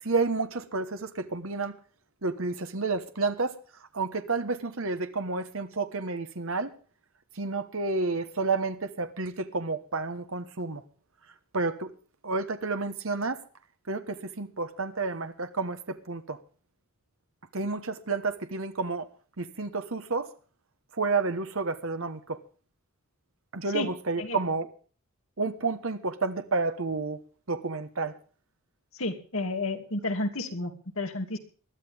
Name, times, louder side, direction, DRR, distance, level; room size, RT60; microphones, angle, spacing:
voice 1, 0.0-1.7 2.2-3.6 3.9-6.7 7.3-10.8 11.5-11.9 12.2-13.4 13.9-16.4 17.5-19.1 19.4-20.3 21.0-22.4 23.5-24.7 25.4-27.2 27.5-28.1, right 3 dB, 70° right, 1.2 m, -30 dB
voice 2, 29.0-31.4, left 2 dB, 70° left, 2.6 m, -31 dB
21.0 x 13.0 x 3.5 m
head